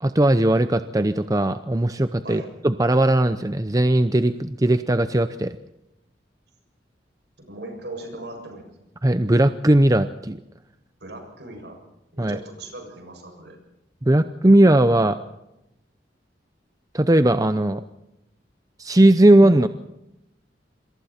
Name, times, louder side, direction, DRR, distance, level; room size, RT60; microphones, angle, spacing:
voice 1, 0.0-5.6 9.0-10.4 12.2-12.4 14.1-15.2 16.9-17.8 18.8-19.7, right 1 dB, 20° right, 10 dB, 0.7 m, -18 dB
voice 2, 7.4-8.7 11.0-11.8 12.1-13.6, right 2 dB, 65° right, 4 dB, 7.1 m, -38 dB
27.5 x 23.0 x 4.4 m, 0.87 s
head